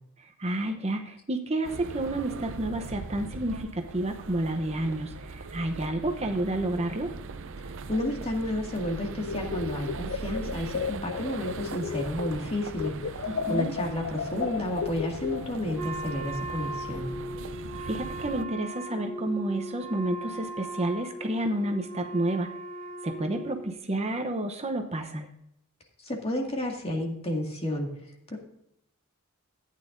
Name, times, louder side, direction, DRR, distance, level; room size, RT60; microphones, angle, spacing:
voice 1, 0.4-7.1 13.3-13.7 17.8-22.5 23.0-25.3, right 1 dB, 30° right, 5 dB, 0.8 m, -30 dB
sound 1, 1.6-18.4, right 4 dB, 60° right, 0.6 m, -40 dB
voice 2, 7.6-17.1 26.0-27.9 28.3-28.4, left 1 dB, 30° left, 1 dB, 2.1 m, -31 dB
sound 2, 9.2-12.5 12.7-15.8, left 7 dB, 55° left, 0.5 m, -34 dB
Wind instrument woodwind instrument, 15.7-23.7, right 1 dB, 10° left, 2.5 m, -38 dB
14.0 x 9.3 x 2.6 m, 0.80 s
head